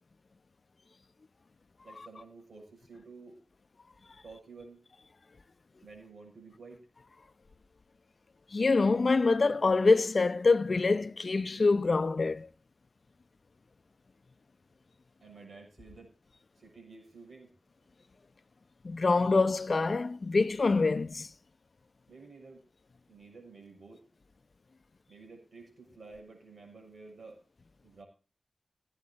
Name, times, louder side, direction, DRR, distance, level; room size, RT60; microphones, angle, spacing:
voice 1, 1.8-3.4 4.2-4.8 5.8-6.8 15.2-16.1 16.6-17.5 22.1-22.6 23.1-24.0 25.1-27.4 27.8-28.0, right 4 dB, 75° right, 6.8 m, -51 dB
voice 2, 8.5-12.5 18.8-21.3, left 3 dB, 55° left, 0.7 m, -25 dB
16.0 x 8.9 x 4.2 m
wide cardioid pair, 80°, 0 cm